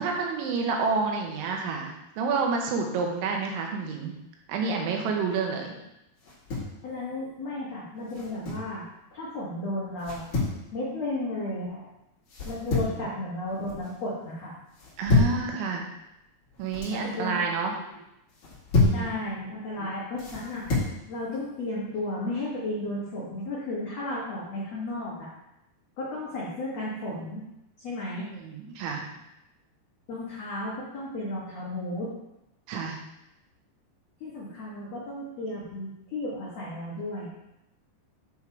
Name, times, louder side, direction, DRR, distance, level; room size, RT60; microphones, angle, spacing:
voice 1, 0.0-4.2 4.5-5.8 12.8-13.1 15.0-15.9 16.6-17.7 18.8-19.1 19.8-19.9 28.2-29.1 32.7-33.0, right 4 dB, 90° right, 1 dB, 3.4 m, -29 dB
sound 1, 6.2-6.8 8.1-8.7 10.0-10.6 12.3-13.0 13.4-13.9 14.7-15.4 16.5-17.0 18.3-19.1 20.2-20.9, left 3 dB, 45° left, 2.9 m, -27 dB
voice 2, 6.8-8.8 9.1-10.3 10.7-11.8 12.4-14.5 16.9-17.4 18.9-20.6 21.1-25.3 26.0-27.4 27.8-28.3 30.1-32.1 34.2-37.3, left 1 dB, 75° left, -7 dB, 1.5 m, -34 dB
8.8 x 3.6 x 4.6 m, 0.88 s
omnidirectional pair, 5.2 m